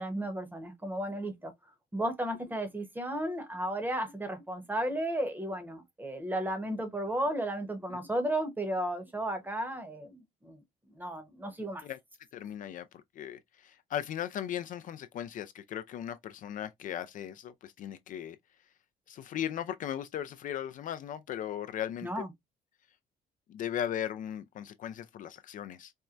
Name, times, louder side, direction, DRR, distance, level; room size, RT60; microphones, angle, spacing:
voice 1, 0.0-1.5 1.9-10.6 11.0-11.8 22.0-22.3, right 1 dB, 10° right, 0.9 m, -34 dB
voice 2, 12.3-18.4 19.1-22.2 23.5-25.9, left 10 dB, 50° left, 0.4 m, -37 dB
4.3 x 2.1 x 2.4 m
cardioid pair, 110°, 17 cm